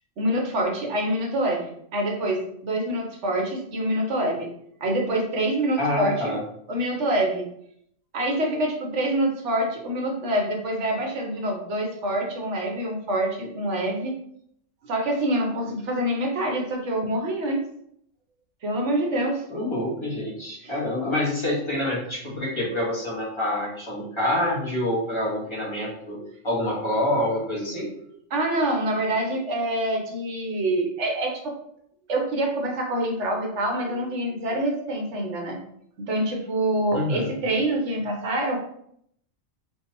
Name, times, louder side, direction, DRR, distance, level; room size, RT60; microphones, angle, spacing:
voice 1, 0.2-4.5 4.8-6.3 6.7-7.5 8.1-14.1 14.9-17.6 18.6-19.4 20.6-20.7 28.3-31.5 32.1-35.6 36.1-38.6, right 1 dB, 65° right, 1 dB, 1.1 m, -26 dB
voice 2, 5.8-6.4 19.5-26.2 26.4-27.9 36.9-37.3, left 1 dB, 20° left, -6 dB, 1.5 m, -27 dB
3.9 x 3.4 x 2.9 m, 0.69 s
omnidirectional pair, 1.4 m